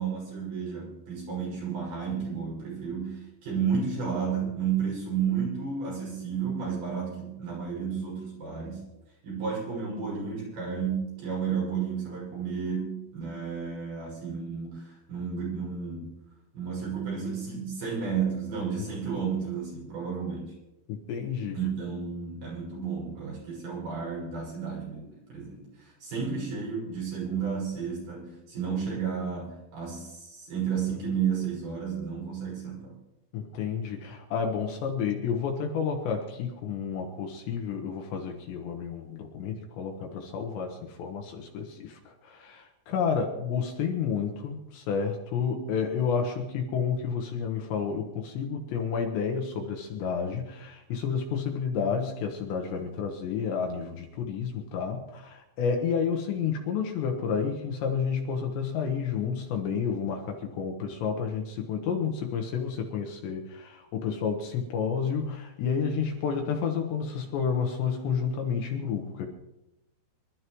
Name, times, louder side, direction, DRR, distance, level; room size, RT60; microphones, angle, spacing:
voice 1, 0.0-8.8 9.2-16.1 16.5-20.5 21.5-32.9, right 6 dB, 50° right, -5 dB, 7.8 m, -32 dB
voice 2, 20.9-21.6 33.3-69.3, left 6 dB, 70° left, 2 dB, 3.1 m, -30 dB
26.0 x 13.0 x 3.1 m, 0.92 s
omnidirectional pair, 5.7 m